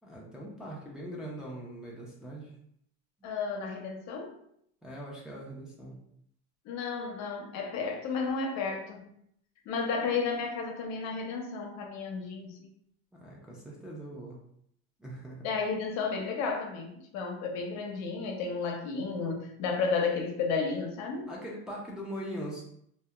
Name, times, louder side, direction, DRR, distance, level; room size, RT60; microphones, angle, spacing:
voice 1, 0.0-2.5 4.8-6.0 13.2-14.4 15.0-15.5 21.3-22.6, right 1 dB, ahead, -4 dB, 0.4 m, -41 dB
voice 2, 3.2-4.3 6.6-9.1 9.7-12.7 15.4-21.3, left 4 dB, 65° left, 3 dB, 0.6 m, -32 dB
2.7 x 2.1 x 2.3 m, 0.70 s
cardioid pair, 130°, 30 cm